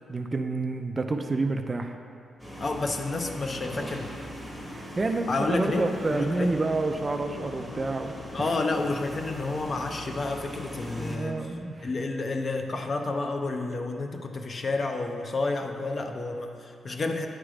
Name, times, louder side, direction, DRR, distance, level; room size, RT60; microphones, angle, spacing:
voice 1, 0.1-2.0 4.7-8.2 11.0-11.9, right 3 dB, 25° right, 5 dB, 0.3 m, -29 dB
sound 1, 2.4-11.2, equal, 5° left, 1.0 m, -40 dB
voice 2, 2.6-4.1 5.3-5.9 6.1-6.5 8.3-11.5 11.8-17.3, left 3 dB, 35° left, 4 dB, 0.5 m, -30 dB
8.8 x 3.2 x 4.9 m, 2.4 s
wide cardioid pair, 135°, 0 cm